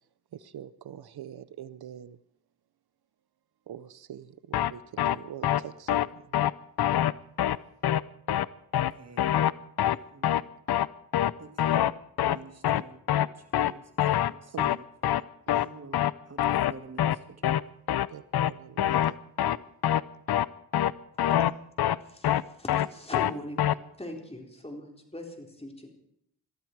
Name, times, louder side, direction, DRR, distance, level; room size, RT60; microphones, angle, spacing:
voice 1, 0.3-2.2 3.7-6.4 7.8-7.9 14.5-14.8 18.1-19.2, right 10 dB, 80° right, 0.6 m, -44 dB
sound 1, 4.5-4.7 5.0-5.2 5.4-5.6 5.9-6.1 6.3-6.5 6.8-7.1 7.4-7.6 7.8-8.0 8.3-8.5 8.7-8.9 9.2-9.5 9.8-10.0 10.2-10.4 10.7-10.9 11.1-11.3 11.6-11.9 12.2-12.4 12.6-12.8 13.1-13.3 13.5-13.7 14.0-14.3 14.6-14.8 15.0-15.2 15.5-15.7 15.9-16.1 16.4-16.7 17.0-17.2 17.4-17.6 17.9-18.1 18.3-18.5 18.8-19.1 19.4-19.6 19.8-20.0 20.3-20.5 20.7-20.9 21.2-21.5 21.8-22.0 22.2-22.4 22.7-22.9 23.1-23.3 23.6-23.7, left 11 dB, 75° left, 0.6 m, -24 dB
voice 2, 8.7-9.5 10.1-10.4 11.4-11.8 12.2-13.0 13.3-14.8 15.5-17.7, right 4 dB, 40° right, 1.6 m, -49 dB
voice 3, 22.0-23.6 24.0-25.9, left 1 dB, 15° left, 4.1 m, -41 dB
22.0 x 13.5 x 4.6 m
cardioid pair, 65°, 38 cm